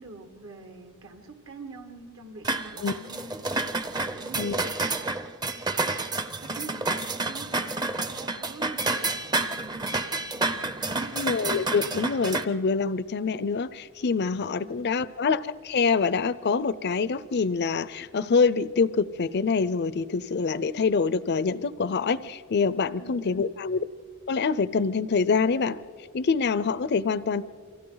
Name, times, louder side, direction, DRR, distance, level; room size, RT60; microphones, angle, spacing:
voice 1, 0.0-3.7 4.0-5.3 6.4-11.2 14.6-15.1 23.0-23.4, right 2 dB, 70° right, 4 dB, 1.6 m, -45 dB
sound 1, 2.4-12.4, right 3 dB, 20° right, 0.6 m, -29 dB
voice 2, 11.1-23.8 24.3-25.8 26.1-27.4, left 5 dB, 50° left, 18 dB, 0.5 m, -25 dB
29.5 x 24.5 x 4.0 m, 2.1 s
head